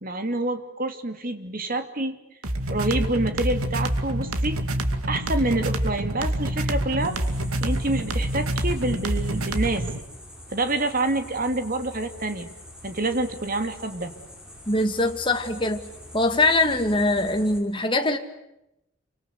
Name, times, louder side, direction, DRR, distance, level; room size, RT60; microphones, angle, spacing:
voice 1, 0.0-2.2 2.7-4.6 5.1-7.2 7.6-9.9 10.5-12.5 12.8-14.1, right 2 dB, 40° right, 7 dB, 2.8 m, -27 dB
sound 1, 2.4-10.0, right 1 dB, 85° right, 2.4 m, -27 dB
sound 2, 7.0-17.6, equal, 5° right, 5.6 m, -44 dB
voice 2, 14.7-15.8 16.1-18.2, left 2 dB, 25° left, 5 dB, 2.3 m, -22 dB
29.0 x 25.0 x 8.2 m, 0.86 s
head